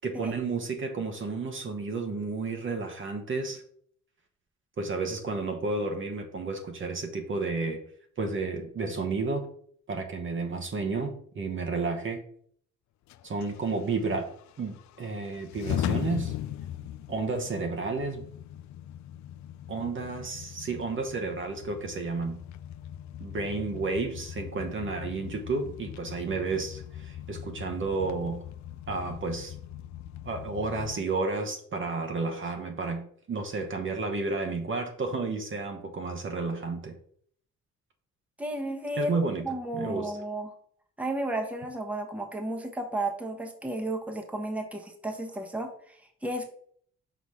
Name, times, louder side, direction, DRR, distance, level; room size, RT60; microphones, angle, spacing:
voice 1, 0.0-3.6 4.8-7.8 8.2-9.5 9.9-12.2 13.2-14.3 14.6-16.3 17.1-18.2 19.7-22.4 23.2-28.4 28.9-29.5 30.2-36.9 39.0-40.1, right 3 dB, 40° right, 4 dB, 1.0 m, -31 dB
sound 1, 13.1-31.0, left 12 dB, 70° left, 0.4 m, -39 dB
voice 2, 38.4-39.1 39.4-40.5 41.0-46.5, right 1 dB, 5° right, 3 dB, 1.1 m, -33 dB
5.9 x 4.0 x 4.8 m, 0.62 s
cardioid pair, 90°, 30 cm